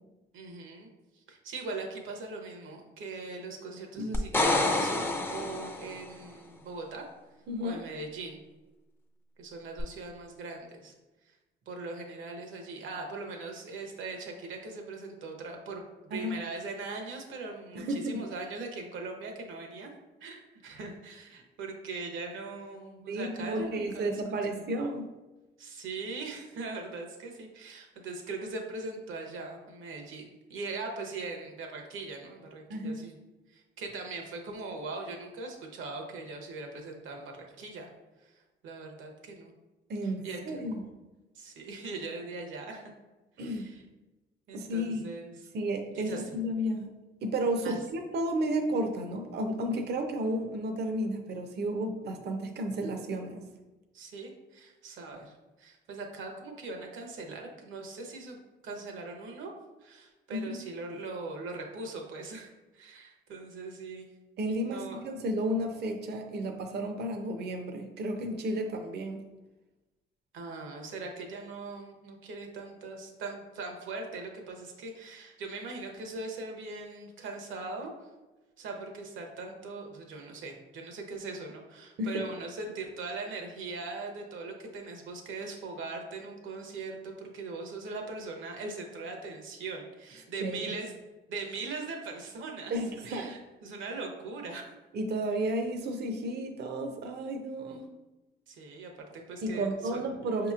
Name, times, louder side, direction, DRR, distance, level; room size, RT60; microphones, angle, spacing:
voice 1, 0.3-0.9 1.1-7.0 7.6-8.4 9.4-10.9 11.2-11.3 11.7-19.9 20.2-24.2 25.6-30.2 30.5-33.1 33.5-37.9 38.2-38.3 38.6-39.5 40.2-40.6 41.3-42.8 43.4-43.8 44.5-45.3 45.9-46.2 47.6-47.8 53.9-58.4 58.6-59.5 59.8-64.1 64.6-65.0 70.3-77.9 78.6-90.9 91.3-94.7 97.7-97.8 98.5-100.0, right 3 dB, 80° right, 2 dB, 0.9 m, -40 dB
sound 1, 4.1-6.1 9.8-9.9, left 2 dB, 10° left, 0.4 m, -28 dB
voice 2, 7.5-7.8 16.1-16.4 17.8-18.2 23.1-25.1 32.7-33.0 39.9-40.8 43.4-43.7 44.5-45.1 45.5-46.9 47.2-53.4 60.3-60.6 64.4-69.2 82.0-82.2 90.4-90.7 92.7-93.4 94.9-97.9 99.4-100.5, right 1 dB, 55° right, 4 dB, 0.6 m, -32 dB
5.4 x 2.9 x 2.4 m, 1.1 s
cardioid pair, 90°, 20 cm